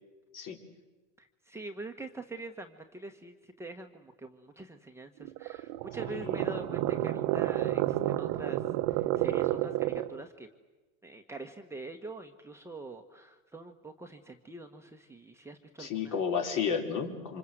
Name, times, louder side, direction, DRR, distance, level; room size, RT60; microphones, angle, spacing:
voice 1, 1.2-8.6 8.9-10.5 11.0-16.1, right 2 dB, 5° right, 3 dB, 1.3 m, -44 dB
sound 1, 5.2-10.2, right 15 dB, 60° right, 1.1 m, -30 dB
voice 2, 6.0-6.4 15.8-17.4, left 6 dB, 45° left, 3 dB, 4.5 m, -32 dB
27.5 x 26.0 x 7.8 m, 1.2 s
supercardioid pair, 125°, 42 cm